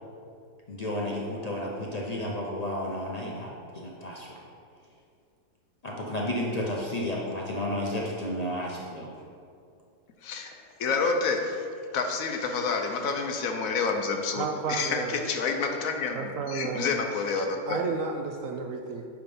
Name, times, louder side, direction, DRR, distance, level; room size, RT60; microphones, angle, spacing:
voice 1, 0.7-4.4 5.8-9.2, left 1 dB, 45° left, -3 dB, 0.5 m, -32 dB
voice 2, 10.2-10.5 10.8-11.6 11.9-16.2 16.5-17.8, left 4 dB, 65° left, 4 dB, 1.0 m, -28 dB
voice 3, 14.3-15.2 16.1-17.0 17.7-19.1, right 5 dB, 70° right, 4 dB, 0.8 m, -32 dB
8.9 x 3.7 x 5.3 m, 2.4 s
omnidirectional pair, 1.7 m